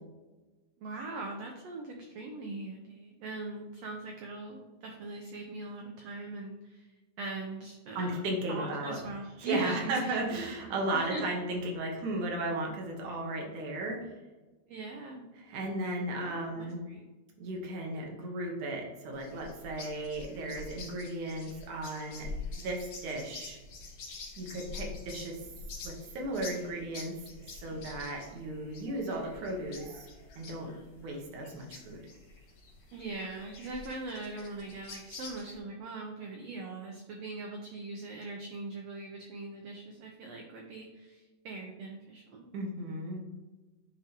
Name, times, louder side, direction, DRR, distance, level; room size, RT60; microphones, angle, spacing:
voice 1, 0.8-6.9 7.2-8.2 8.5-10.4 10.9-11.3 14.7-15.3 16.2-17.0 32.9-42.4, right 2 dB, 85° right, 1 dB, 1.4 m, -41 dB
voice 2, 8.0-9.0 9.4-14.1 15.4-16.9 17.4-22.3 22.6-23.6 24.4-25.4 25.8-27.1 27.4-30.1 30.4-30.7 31.0-32.0 42.5-43.2, right 1 dB, 70° right, 0 dB, 2.4 m, -35 dB
sound 1, 19.1-35.6, left 4 dB, 60° left, 2.3 m, -46 dB
9.8 x 3.6 x 2.9 m, 1.2 s
omnidirectional pair, 3.8 m